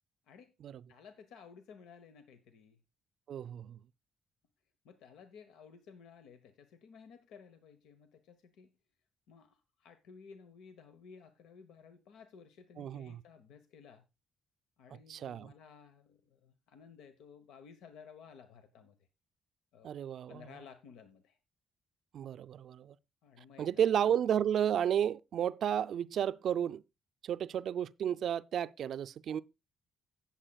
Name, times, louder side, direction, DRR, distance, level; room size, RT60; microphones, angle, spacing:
voice 1, 0.3-0.6 0.9-2.8 4.8-8.7 9.3-14.0 14.8-19.1 19.7-19.9 20.3-21.4 23.2-24.2, left 6 dB, 90° left, 0.9 m, -56 dB
voice 2, 3.3-3.8 12.8-13.2 15.1-15.5 19.8-20.5 22.1-23.0 23.6-26.8 27.2-29.4, right 9 dB, 65° right, 0.4 m, -32 dB
16.5 x 7.2 x 2.3 m
cardioid pair, 90°, 0 cm